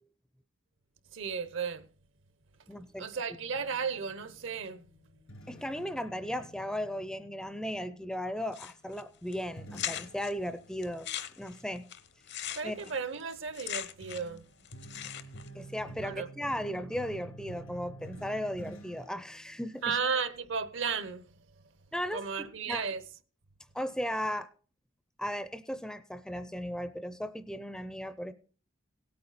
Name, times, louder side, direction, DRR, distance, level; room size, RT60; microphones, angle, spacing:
voice 1, 1.1-1.8 3.0-4.9 12.5-14.5 16.0-16.3 19.8-21.3 22.1-23.0, right 5 dB, 65° right, 0.9 m, -34 dB
voice 2, 2.7-3.1 5.5-11.1 11.4-11.9 12.6-13.0 15.5-20.0 21.9-22.9 23.7-24.5 25.2-28.3, equal, 5° left, 0.5 m, -36 dB
sound 1, 3.3-8.1 9.6-11.7 12.8-13.1 13.6-20.0, right 1 dB, 90° left, 3.4 m, -50 dB
sound 2, 8.5-9.0 9.3-9.4 9.7-10.3 10.8-14.4 14.6-15.5, left 11 dB, 55° left, 0.8 m, -39 dB
17.5 x 8.7 x 4.1 m
head